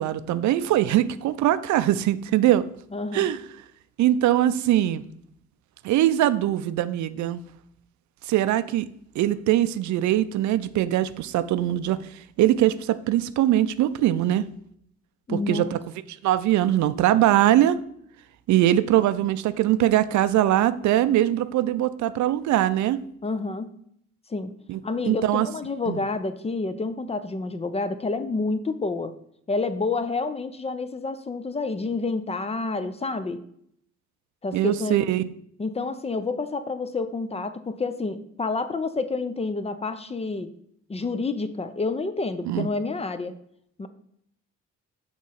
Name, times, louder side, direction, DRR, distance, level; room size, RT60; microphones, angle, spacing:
voice 1, 0.0-2.6 3.1-3.4 4.0-5.0 5.8-7.4 8.3-8.9 9.2-12.0 12.4-14.5 15.3-15.8 16.2-17.8 18.5-23.0 24.7-25.5 25.9-26.0 34.5-35.3 42.4-42.7, right 13 dB, 70° right, 14 dB, 0.4 m, -22 dB
voice 2, 2.9-3.3 15.3-15.7 23.2-23.7 24.3-24.5 24.8-29.1 29.5-33.4 34.4-35.0 35.6-40.5 40.9-43.4 43.8-43.9, left 3 dB, 20° left, 11 dB, 0.4 m, -29 dB
6.2 x 3.1 x 5.6 m, 0.70 s
cardioid pair, 90°, 30 cm